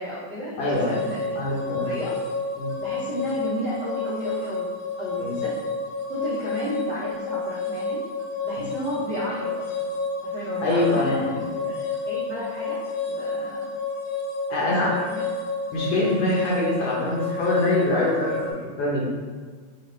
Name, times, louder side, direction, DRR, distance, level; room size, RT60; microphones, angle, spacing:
voice 1, 0.0-1.4 1.8-2.1 2.8-4.7 5.0-5.6 6.1-8.0 8.4-9.9 10.2-12.8 13.1-13.6 14.6-15.2, equal, 85° right, -9 dB, 0.9 m, -33 dB
voice 2, 0.6-1.0 1.3-1.9 2.6-2.7 5.2-5.3 10.6-11.3 14.5-14.9 15.7-19.1, left 1 dB, 65° left, -6 dB, 1.6 m, -24 dB
sound 1, 0.7-18.5, left 3 dB, 85° left, 1.3 m, -30 dB
6.6 x 2.5 x 3.1 m, 1.5 s
omnidirectional pair, 3.5 m